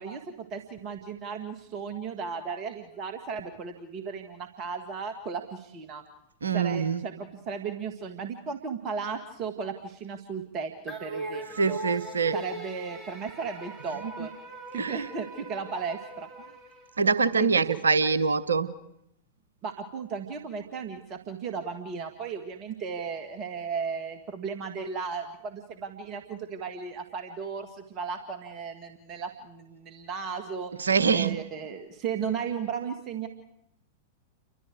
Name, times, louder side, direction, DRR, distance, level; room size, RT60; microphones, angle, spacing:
voice 1, 0.0-6.0 6.5-11.8 12.3-14.3 14.7-16.3 17.3-17.8 19.6-30.7 31.1-33.3, right 6 dB, 35° right, 5 dB, 2.1 m, -35 dB
voice 2, 6.4-7.0 11.6-12.3 14.8-15.0 17.0-18.7 30.8-31.4, right 5 dB, 75° right, 13 dB, 1.1 m, -24 dB
sound 1, 10.9-17.4, right 2 dB, 15° right, 4.7 m, -40 dB
29.5 x 24.5 x 4.8 m, 0.78 s
figure-of-eight pair, 95°, 0 cm